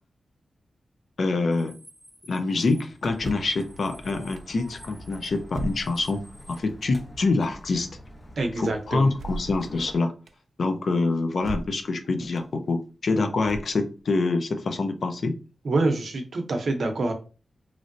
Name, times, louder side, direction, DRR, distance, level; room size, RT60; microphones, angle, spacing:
voice 1, 1.2-1.8 2.3-6.2 6.5-7.9 8.6-10.1 10.6-15.4, left 3 dB, 60° left, 6 dB, 0.5 m, -26 dB
sound 1, 1.5-6.6, equal, 10° left, 0.9 m, -52 dB
Walk footsteps, 3.0-9.9, equal, 35° left, 1.0 m, -44 dB
sound 2, 3.2-3.6 4.4-4.5 5.5-6.2 6.8-7.0 9.1-9.6 10.3-10.4 11.4-11.9 12.4-12.5 13.4-14.0, right 2 dB, 80° right, 0.3 m, -36 dB
voice 2, 8.4-9.1 15.6-17.1, right 2 dB, 60° right, 5 dB, 0.7 m, -26 dB
3.1 x 2.6 x 2.6 m, 0.34 s
wide cardioid pair, 110°, 0 cm